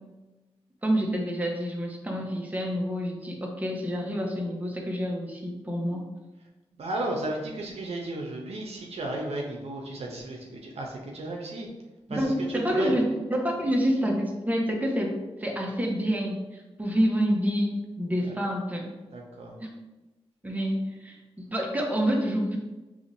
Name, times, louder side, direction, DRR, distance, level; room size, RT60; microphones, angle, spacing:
voice 1, 0.8-6.1 12.1-18.9 19.6-19.7 20.4-22.6, equal, 15° right, 0 dB, 1.1 m, -28 dB
voice 2, 6.8-11.7 12.1-13.0 18.2-18.3 19.1-19.6, right 2 dB, 70° right, 0 dB, 0.7 m, -34 dB
5.0 x 3.1 x 2.6 m, 1.1 s
cardioid pair, 45°, 11 cm